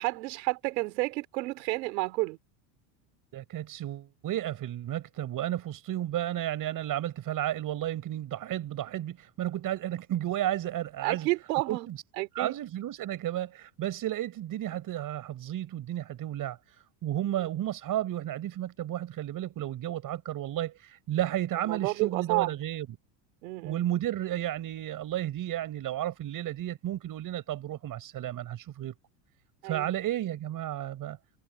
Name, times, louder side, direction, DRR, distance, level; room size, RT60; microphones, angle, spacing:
voice 1, 0.0-2.4 11.0-11.9 12.2-12.5 17.2-17.5 21.6-22.5 23.4-23.9 29.6-29.9, right 23 dB, 80° right, 3.2 m, -31 dB
voice 2, 3.3-11.3 11.7-12.0 12.4-22.9 23.6-28.9 29.6-31.2, right 12 dB, 40° right, 5.4 m, -33 dB
supercardioid pair, 125°, 50 cm